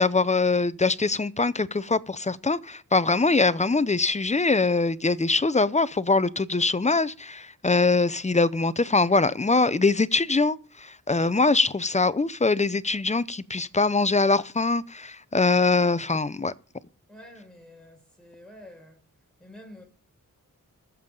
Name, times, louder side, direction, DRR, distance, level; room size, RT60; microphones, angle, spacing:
voice 1, 0.0-16.5, left 3 dB, 20° left, 0.6 m, -23 dB
voice 2, 17.1-19.0 19.4-19.8, left 1 dB, ahead, 5.8 m, -48 dB
21.0 x 7.3 x 3.9 m
cardioid pair, 65°, 34 cm